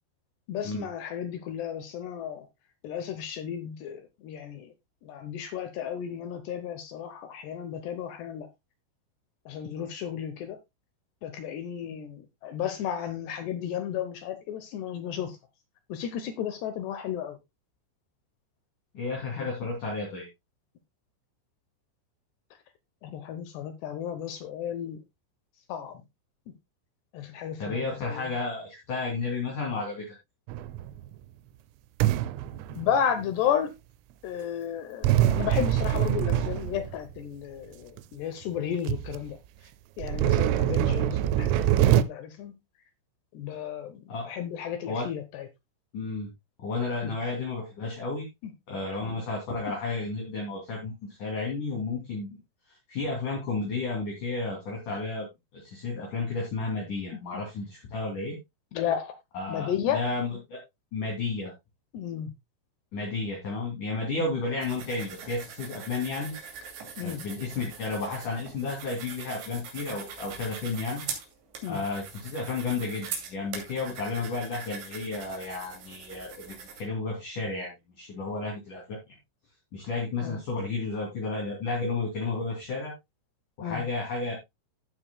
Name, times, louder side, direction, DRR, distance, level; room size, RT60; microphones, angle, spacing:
voice 1, 0.5-2.5 2.8-4.7 5.0-8.5 9.5-10.6 11.2-15.4 15.9-17.4 19.4-19.5 23.0-25.0 25.7-26.0 27.1-28.3 32.7-33.7 34.2-39.4 40.0-42.5 43.3-45.5 47.0-47.2 57.3-57.4 58.7-59.1 59.5-60.0 61.9-62.3 64.2-64.3 67.0-67.2 71.6-71.8 80.2-80.4 83.6-83.8, left 9 dB, 75° left, 2.6 m, -33 dB
voice 2, 18.9-20.3 27.6-30.0 44.1-44.3 44.8-45.1 45.9-46.3 46.6-48.3 48.7-50.9 51.2-52.4 52.9-58.3 59.3-60.6 60.9-61.5 62.9-66.3 67.0-71.0 71.7-77.7 78.0-79.0 79.7-82.9 83.6-84.3, left 3 dB, 45° left, 3.8 m, -32 dB
sound 1, 30.5-31.1 32.0-33.3 35.0-37.2 38.0-38.1 38.6-38.7 38.9-39.2 40.0-42.0, right 12 dB, 85° right, 3.2 m, -24 dB
sound 2, 64.6-76.8, right 6 dB, 60° right, 4.4 m, -42 dB
16.0 x 7.0 x 2.3 m
omnidirectional pair, 5.9 m